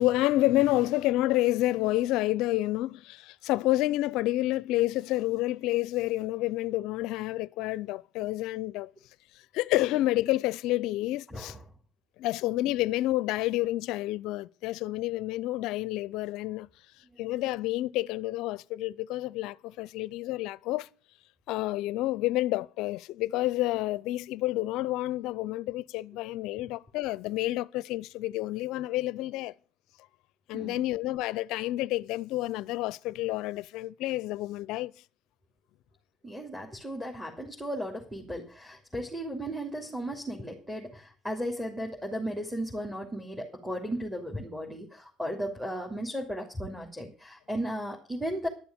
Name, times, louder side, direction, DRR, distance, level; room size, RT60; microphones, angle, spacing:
voice 1, 0.0-8.9 9.5-11.5 12.2-16.7 17.2-20.9 21.5-29.5 30.5-34.9, left 16 dB, 70° left, 0.5 m, -29 dB
voice 2, 11.3-11.6 30.5-30.8 36.2-48.5, equal, 5° right, 3.2 m, -35 dB
12.0 x 6.9 x 8.9 m
hypercardioid pair, 75°, 0 cm